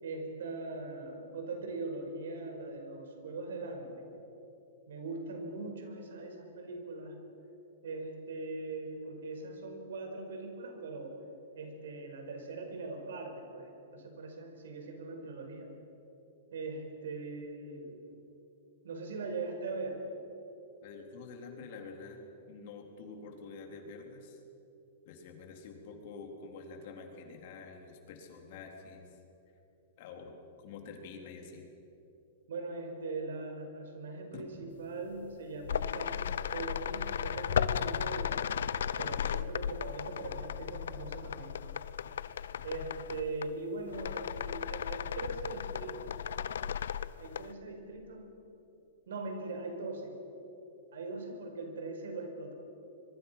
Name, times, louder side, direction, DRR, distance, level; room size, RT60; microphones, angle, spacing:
voice 1, 0.0-4.1 4.9-7.2 7.8-11.2 11.5-15.7 16.5-18.0 18.8-20.0 32.5-38.5 39.0-41.6 42.6-46.1 47.2-48.3 49.1-50.1 50.9-52.5, right 3 dB, 90° right, 4 dB, 5.0 m, -41 dB
voice 2, 20.8-22.2 22.5-24.4 25.1-29.1 30.0-31.6 34.3-34.7, left 4 dB, 50° left, 2 dB, 3.8 m, -47 dB
sound 1, 35.2-35.3 35.6-43.5 43.9-47.5, left 8 dB, 90° left, 0.6 m, -35 dB
25.5 x 22.5 x 5.9 m, 3.0 s
supercardioid pair, 160°, 0 cm